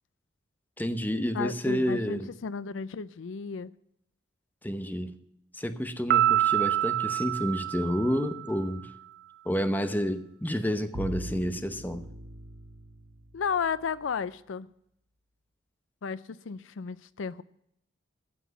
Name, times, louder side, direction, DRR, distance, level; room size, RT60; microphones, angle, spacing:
voice 1, 0.8-2.3 4.6-5.1 5.5-8.9 9.4-12.0, equal, 10° left, 0.9 m, -30 dB
voice 2, 1.3-3.7 13.3-14.7 16.0-17.4, left 6 dB, 75° left, 0.5 m, -33 dB
Piano, 6.1-8.7, right 12 dB, 55° right, 0.4 m, -26 dB
Bowed string instrument, 10.9-14.0, right 1 dB, 90° right, 1.3 m, -41 dB
15.0 x 6.0 x 9.3 m
head